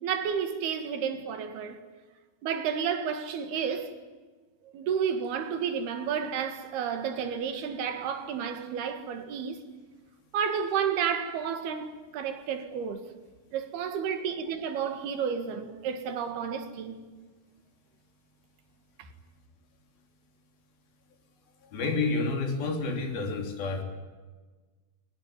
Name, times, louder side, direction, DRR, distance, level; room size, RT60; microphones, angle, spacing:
voice 1, 0.0-1.8 2.4-3.9 4.7-9.6 10.3-13.1 13.5-17.0 19.0-19.1, right 7 dB, 80° right, 3.9 m, -31 dB
voice 2, 21.6-23.8, left 3 dB, 70° left, 5.0 m, -29 dB
21.5 x 20.0 x 9.6 m
omnidirectional pair, 4.4 m